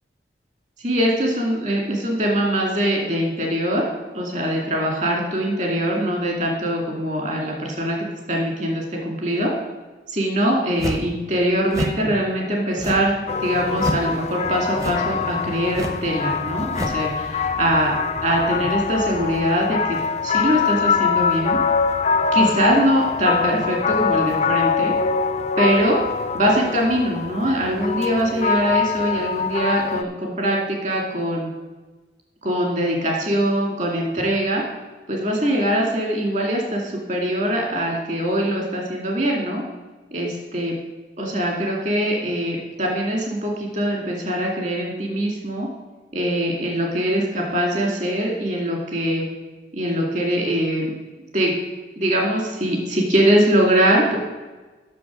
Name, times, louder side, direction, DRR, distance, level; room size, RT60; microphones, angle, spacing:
voice 1, 0.8-3.8 4.1-8.0 8.3-9.5 10.1-13.1 13.4-18.0 18.2-20.0 20.2-21.6 22.3-24.9 25.6-26.0 26.3-31.5 32.4-34.6 35.1-39.6 40.1-40.7 41.2-45.7 46.1-49.2 49.7-50.9 51.3-51.5 52.0-54.2, equal, 45° right, -1 dB, 2.4 m, -22 dB
sound 1, 10.8-11.1 11.7-12.0 12.8-13.2 13.8-14.1 14.8-15.1 15.7-16.1 16.7-17.0, equal, 20° right, 0.9 m, -28 dB
sound 2, 13.3-30.0, left 5 dB, 40° left, 0.5 m, -23 dB
10.5 x 6.7 x 6.2 m, 1.2 s
head